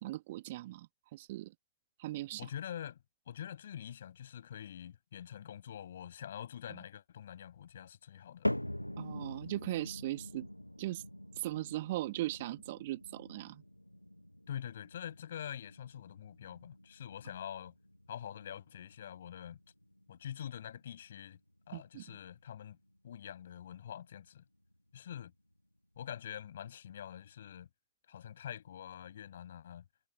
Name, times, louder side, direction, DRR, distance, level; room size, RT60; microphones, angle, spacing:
voice 1, 0.0-1.5 2.0-2.4 9.0-10.5 10.8-11.0 11.4-13.6 21.7-22.2, right 16 dB, 55° right, 2.3 m, -39 dB
voice 2, 2.4-3.0 3.3-8.6 14.5-17.7 18.1-19.6 20.1-21.4 21.7-22.8 23.0-24.4 24.9-25.3 26.0-27.7 28.1-29.8, left 9 dB, 65° left, 7.9 m, -45 dB
sound 1, 8.4-24.8 25.1-25.6 26.2-26.3 27.1-27.2, left 1 dB, 90° left, 1.3 m, -45 dB
figure-of-eight pair, 90°, 0 cm